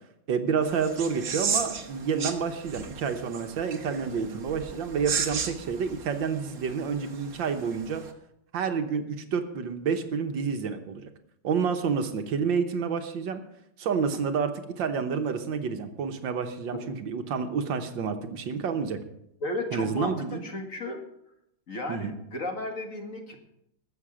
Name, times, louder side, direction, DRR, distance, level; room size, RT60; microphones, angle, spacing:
voice 1, 0.3-8.0 8.5-11.1 11.4-13.4 13.8-19.0 19.7-20.5 21.9-22.1, right 6 dB, 70° right, 7 dB, 1.7 m, -29 dB
sound 1, 0.6-8.1, right 6 dB, 50° right, 1.6 m, -35 dB
voice 2, 19.4-21.0 21.7-23.4, left 1 dB, 40° left, 3 dB, 2.1 m, -34 dB
20.5 x 7.6 x 5.0 m, 0.78 s
omnidirectional pair, 2.1 m